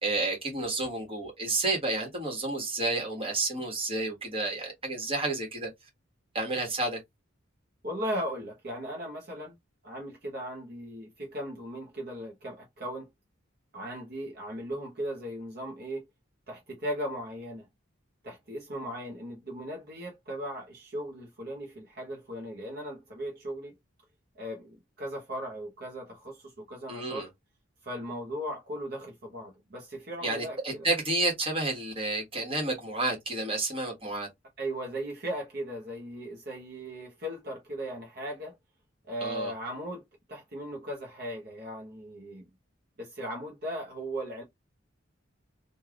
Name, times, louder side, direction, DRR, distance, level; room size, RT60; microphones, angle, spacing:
voice 1, 0.0-5.7 6.3-7.0 26.9-27.3 30.2-34.3 39.2-39.5, right 2 dB, 30° right, 1.6 m, -30 dB
voice 2, 7.8-9.5 9.8-13.1 13.7-16.1 16.5-17.7 18.2-23.7 24.4-27.3 27.8-30.9 34.6-38.5 39.1-40.0 40.3-42.5 43.0-44.4, equal, 50° right, 1.0 m, -37 dB
3.3 x 2.6 x 3.6 m
head